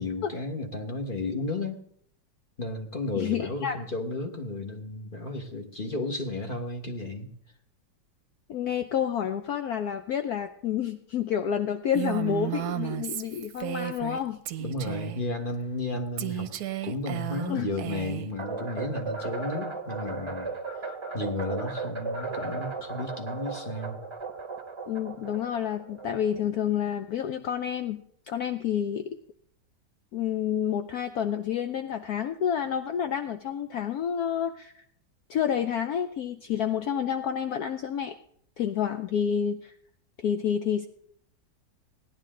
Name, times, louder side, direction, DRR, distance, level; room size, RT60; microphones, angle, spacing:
voice 1, 0.0-1.8 2.6-7.3 14.6-16.5 16.8-20.5 20.8-24.0, left 2 dB, 30° left, 3 dB, 1.5 m, -33 dB
voice 2, 3.2-3.8 8.5-14.4 17.5-17.7 24.9-29.1 30.1-34.8 35.3-38.1 38.6-39.7 40.2-40.9, left 8 dB, 65° left, 8 dB, 1.1 m, -29 dB
Female speech woman speaking, 11.9-14.2 14.5-15.2 16.2-18.3, right 12 dB, 65° right, 1.1 m, -33 dB
sound 1, 18.4-26.7, right 4 dB, 20° right, 0.9 m, -36 dB
17.5 x 10.5 x 3.8 m, 0.63 s
omnidirectional pair, 1.9 m